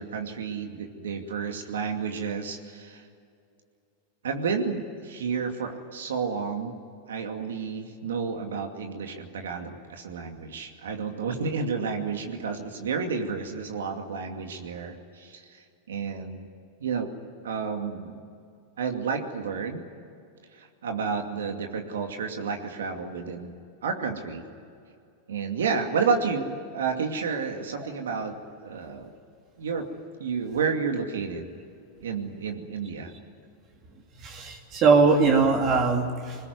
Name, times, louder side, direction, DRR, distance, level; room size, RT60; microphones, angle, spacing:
voice 1, 0.0-3.1 4.2-6.8 7.1-16.5 16.8-17.1 17.4-18.2 18.8-19.8 20.5-23.5 23.8-24.4 25.3-28.3 28.6-29.1 29.6-29.9 30.2-31.5 32.0-33.1, right 5 dB, 85° right, 4 dB, 2.5 m, -31 dB
voice 2, 34.2-36.4, right 4 dB, 45° right, 2 dB, 2.8 m, -21 dB
22.0 x 20.0 x 9.6 m, 2.4 s
hypercardioid pair, 110°, 0 cm